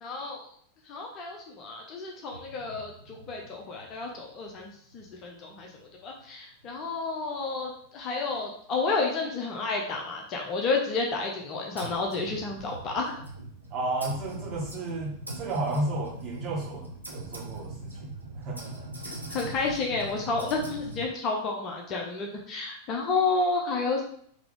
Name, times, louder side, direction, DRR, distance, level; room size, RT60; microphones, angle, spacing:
voice 1, 0.0-0.4 0.9-5.7 6.0-13.2 19.0-24.0, left 3 dB, 35° left, 0 dB, 0.7 m, -31 dB
sound 1, 2.3-6.3 6.6-6.8 7.3-7.4 7.7-7.8 8.9-9.0 9.4-9.5 11.8-21.1, right 2 dB, 90° right, 0.7 m, -42 dB
voice 2, 13.7-17.9 18.3-18.9, right 2 dB, 30° right, -5 dB, 1.6 m, -32 dB
3.7 x 2.9 x 3.4 m, 0.63 s
figure-of-eight pair, 90°, 0 cm